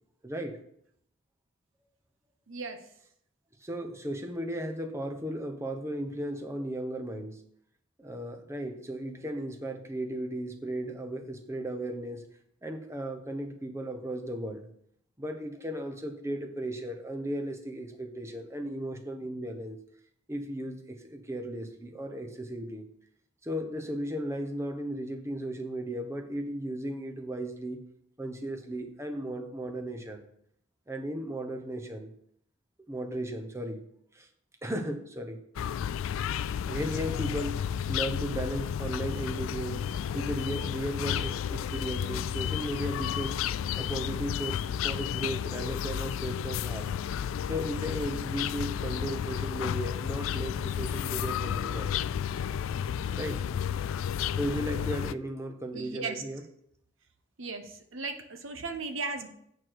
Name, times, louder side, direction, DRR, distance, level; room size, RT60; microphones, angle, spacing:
voice 1, 0.2-0.6 3.6-7.4 8.0-12.2 12.6-14.7 15.2-19.8 20.3-22.9 23.4-27.8 28.2-30.2 30.9-32.1 32.9-33.8 34.1-34.3 34.6-35.4 36.7-43.4 43.8-46.9 47.5-51.9 53.2-53.4 54.4-56.4, right 1 dB, 15° right, 5 dB, 0.9 m, -35 dB
voice 2, 2.5-2.9 55.7-56.2 57.4-59.3, right 4 dB, 75° right, 6 dB, 1.0 m, -36 dB
sound 1, 35.6-55.2, left 8 dB, 80° left, 0.3 m, -32 dB
8.5 x 4.7 x 6.2 m, 0.70 s
head